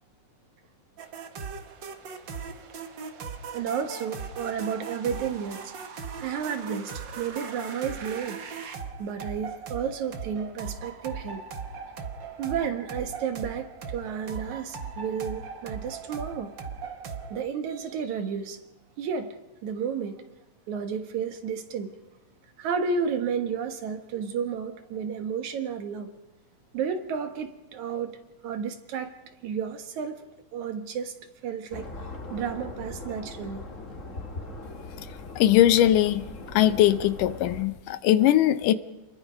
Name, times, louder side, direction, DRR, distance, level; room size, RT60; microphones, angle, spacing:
sound 1, 1.0-17.5, right 5 dB, 50° right, 1.5 m, -39 dB
voice 1, 3.5-5.7 6.2-8.4 9.0-11.4 12.4-16.5 17.3-18.6 19.0-20.2 20.7-22.0 22.6-26.1 26.7-28.2 28.4-29.2 29.4-31.1 31.4-31.9 32.3-33.7, right 6 dB, 70° right, 2.6 m, -32 dB
sound 2, 31.7-37.6, left 2 dB, 30° left, 1.9 m, -40 dB
voice 2, 35.4-36.2 36.5-38.7, left 12 dB, 85° left, 2.5 m, -20 dB
28.5 x 21.5 x 5.2 m
omnidirectional pair, 3.6 m